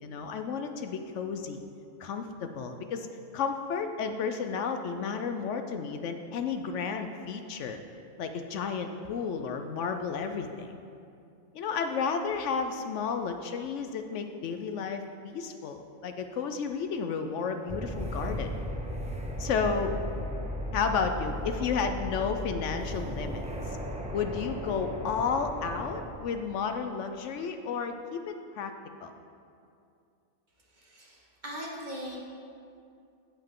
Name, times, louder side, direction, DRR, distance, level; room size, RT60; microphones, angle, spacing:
voice 1, 0.0-1.6 2.0-3.1 3.3-7.8 8.2-10.7 11.5-18.5 19.4-19.9 20.7-23.4 24.1-28.7 29.0-29.1, left 5 dB, 70° left, 7 dB, 0.9 m, -32 dB
sound 1, 17.7-26.1, equal, 10° right, 0.3 m, -36 dB
voice 2, 30.7-32.2, equal, 35° right, -3 dB, 1.4 m, -40 dB
15.5 x 5.6 x 3.7 m, 2.5 s
omnidirectional pair, 1.3 m